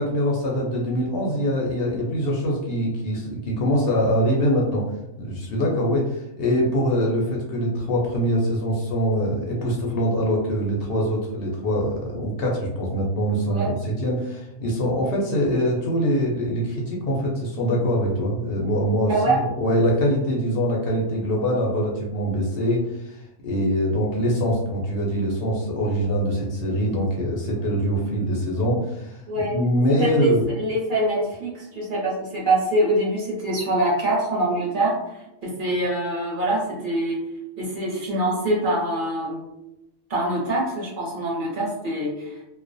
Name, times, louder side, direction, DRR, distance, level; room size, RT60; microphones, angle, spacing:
voice 1, 0.0-4.8 5.2-30.4, equal, 65° left, -2 dB, 0.6 m, -23 dB
voice 2, 19.1-19.4 29.3-29.6 30.0-37.2 37.6-39.4 40.1-42.4, right 1 dB, 50° right, -4 dB, 0.7 m, -24 dB
2.3 x 2.1 x 2.5 m, 0.88 s
omnidirectional pair, 1.4 m